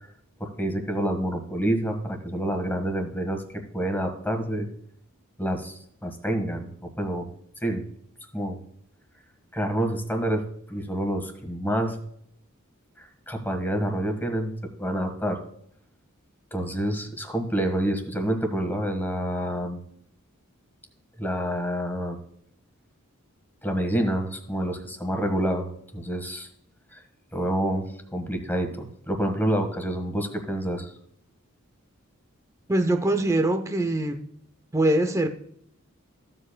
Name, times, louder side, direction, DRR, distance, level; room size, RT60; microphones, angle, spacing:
voice 1, 0.4-4.7 5.4-7.3 7.6-7.8 8.3-8.6 9.5-12.0 13.0-14.5 14.8-15.4 16.5-19.8 21.2-22.2 23.6-25.7 25.9-26.5 26.9-27.0 27.3-30.9, right 1 dB, 10° left, 5 dB, 1.5 m, -28 dB
voice 2, 32.7-34.2 34.7-35.3, right 1 dB, 15° right, 6 dB, 0.6 m, -23 dB
15.0 x 7.6 x 2.2 m, 0.68 s
head